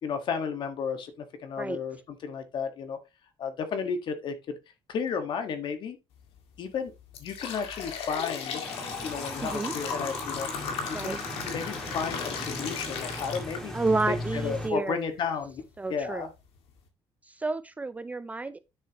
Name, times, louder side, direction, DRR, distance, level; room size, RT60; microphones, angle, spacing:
voice 1, 0.0-3.0 3.4-4.6 4.9-6.0 6.6-6.9 7.2-8.6 9.0-10.5 10.9-11.1 11.4-13.8 14.1-16.3, left 6 dB, 55° left, 1.6 m, -33 dB
sound 1, 6.2-6.4 6.9-14.0 14.5-14.6 15.4-15.5 16.0-16.1 16.6-16.8, left 6 dB, 85° left, 2.0 m, -36 dB
sound 2, 8.6-14.7, left 1 dB, 5° left, 2.0 m, -38 dB
voice 2, 13.7-15.1 15.8-16.3 17.4-18.6, right 3 dB, 15° right, 0.4 m, -30 dB
9.7 x 6.8 x 3.0 m
cardioid pair, 160°, 10 cm